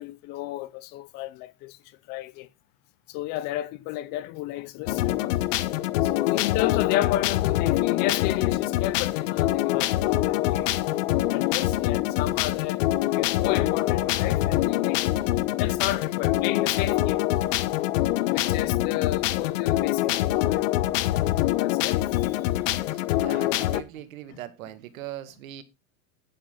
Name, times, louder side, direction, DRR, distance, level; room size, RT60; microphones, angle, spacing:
voice 1, 0.0-1.8 2.1-2.5 3.1-5.4 6.0-10.8 11.3-15.0 15.6-17.2 18.3-20.7 21.1-22.4 23.2-23.5 24.3-24.4, left 15 dB, 25° left, 0.5 m, -32 dB
sound 1, 4.9-23.8, left 15 dB, 60° left, 1.0 m, -25 dB
voice 2, 22.9-25.6, right 13 dB, 70° right, 2.0 m, -40 dB
10.0 x 9.9 x 3.8 m
supercardioid pair, 165°, 42 cm